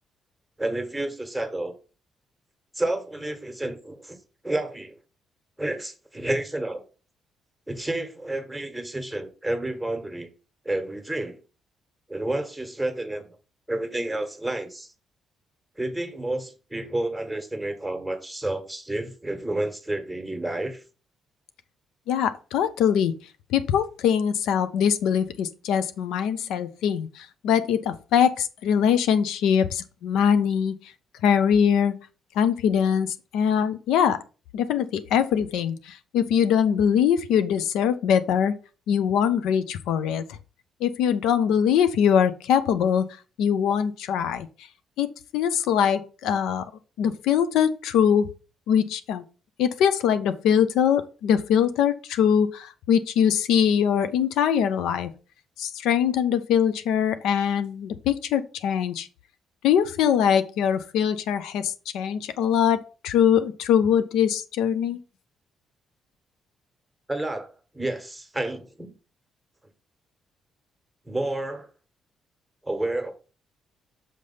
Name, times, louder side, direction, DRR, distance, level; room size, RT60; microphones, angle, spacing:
voice 1, 0.6-1.7 2.7-4.2 4.4-4.9 5.6-6.8 7.7-10.3 10.6-11.4 12.1-13.2 13.7-14.9 15.8-20.8 67.1-67.5 67.7-68.9 71.1-71.7 72.6-73.1, right 1 dB, 5° right, 1.5 m, -30 dB
voice 2, 22.1-23.1 23.5-30.7 31.2-31.9 32.4-34.2 34.5-38.5 38.9-40.2 40.8-43.0 43.4-44.5 45.0-46.6 47.0-48.3 48.7-49.2 49.6-55.1 55.6-59.1 59.6-65.0, left 8 dB, 90° left, 0.5 m, -22 dB
6.5 x 3.3 x 5.5 m
cardioid pair, 90°, 0 cm